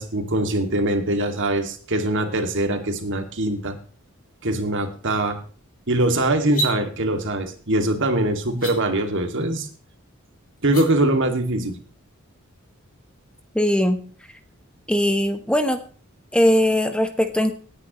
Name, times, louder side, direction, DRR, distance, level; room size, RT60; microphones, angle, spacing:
voice 1, 0.0-3.7 4.4-5.4 5.9-9.7 10.6-11.7, right 1 dB, 60° right, 5 dB, 2.4 m, -22 dB
sound 1, 6.5-6.8 8.5-8.7 10.6-10.8, right 2 dB, 40° left, 4.5 m, -27 dB
voice 2, 13.5-14.0 14.9-15.8 16.3-17.5, equal, 5° left, 8 dB, 1.1 m, -20 dB
18.5 x 9.7 x 3.1 m, 0.40 s
head